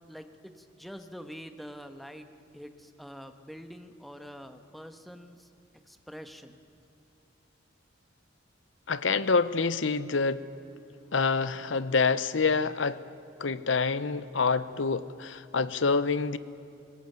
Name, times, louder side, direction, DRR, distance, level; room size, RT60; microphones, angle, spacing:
voice 1, 0.1-2.3 2.5-5.5 5.9-6.6, equal, ahead, 7 dB, 1.2 m, -45 dB
voice 2, 8.9-10.4 11.1-13.0 13.4-16.4, left 4 dB, 80° left, 15 dB, 0.8 m, -27 dB
21.5 x 20.0 x 9.3 m, 2.7 s
head